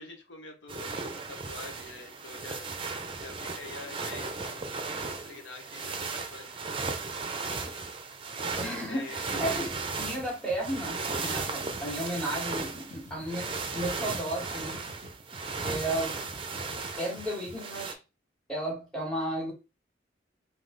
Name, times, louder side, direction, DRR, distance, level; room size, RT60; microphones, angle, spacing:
voice 1, 0.0-2.7 3.2-4.7 5.1-7.1 8.9-9.3, left 3 dB, 80° left, 0.9 m, -46 dB
sound 1, 0.7-17.9, right 4 dB, 30° right, 0.6 m, -36 dB
voice 2, 8.6-14.9 15.6-16.1 17.0-18.0 18.5-19.5, right 1 dB, 5° left, 1.8 m, -34 dB
sound 2, 9.7-17.8, left 1 dB, 40° left, 1.1 m, -48 dB
3.8 x 2.8 x 3.9 m
head